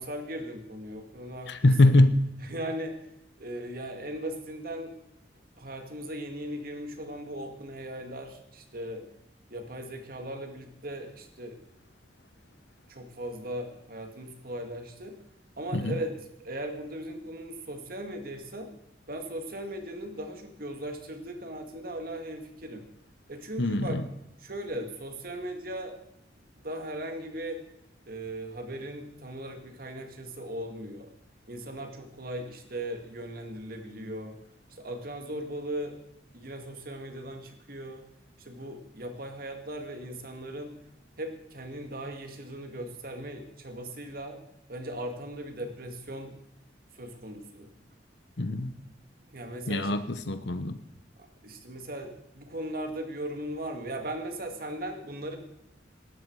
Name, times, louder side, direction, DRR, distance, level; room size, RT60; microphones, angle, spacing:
voice 1, 0.0-2.0 2.4-3.1 3.4-5.0 5.6-9.0 9.5-11.6 12.9-15.2 15.6-18.7 19.1-22.9 23.3-24.0 24.4-26.0 26.6-27.6 28.1-31.1 31.5-34.4 34.7-36.0 36.3-38.0 38.4-40.7 41.2-44.4 44.7-46.3 46.9-47.7 49.3-50.0 51.4-55.4, right 1 dB, 50° right, 4 dB, 2.2 m, -38 dB
voice 2, 1.5-2.1 15.7-15.9 23.6-24.0 48.4-48.7 49.7-50.7, left 2 dB, 70° left, 11 dB, 1.0 m, -23 dB
18.5 x 13.0 x 4.8 m, 0.81 s
head